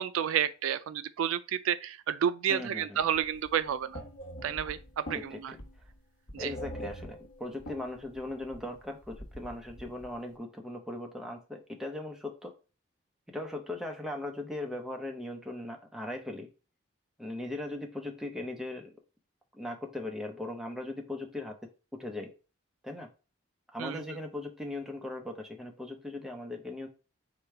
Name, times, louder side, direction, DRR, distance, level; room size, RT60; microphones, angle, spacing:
voice 1, 0.0-4.0 4.4-5.5 6.3-6.5 23.8-24.0, right 9 dB, 85° right, 0.3 m, -30 dB
voice 2, 2.5-3.0 5.1-5.6 6.4-12.5 13.3-16.5 17.2-18.9 19.5-21.5 21.9-22.3 22.8-23.1 23.7-26.9, left 1 dB, ahead, 0.6 m, -39 dB
sound 1, 3.0-10.2, equal, 85° left, 1.2 m, -44 dB
5.0 x 2.3 x 4.3 m
head